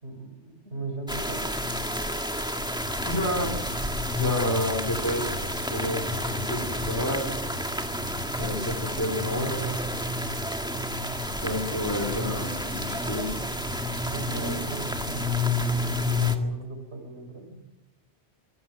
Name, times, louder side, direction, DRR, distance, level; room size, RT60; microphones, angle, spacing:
voice 1, 0.0-1.5 14.1-15.5 15.8-17.6, right 2 dB, 70° right, 5 dB, 5.4 m, -38 dB
sound 1, 1.1-16.4, left 1 dB, 5° right, 1.7 m, -30 dB
sound 2, 2.7-15.0, equal, 45° left, 7.9 m, -41 dB
voice 2, 3.0-3.5 4.1-5.3 5.7-7.3 8.3-9.7 11.4-13.3, left 1 dB, 15° left, 1 dB, 3.8 m, -29 dB
25.0 x 15.0 x 9.2 m, 0.94 s
omnidirectional pair, 1.2 m